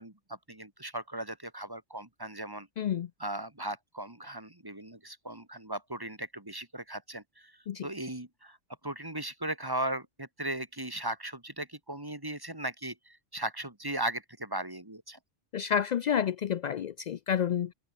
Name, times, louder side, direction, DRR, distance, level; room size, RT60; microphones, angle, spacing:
voice 1, 0.0-2.7 3.2-7.5 7.8-8.6 8.8-15.2, right 1 dB, 15° right, 2.3 m, -37 dB
voice 2, 2.8-3.1 7.7-7.9 15.5-17.7, left 8 dB, 80° left, 0.3 m, -29 dB
omnidirectional pair, 1.3 m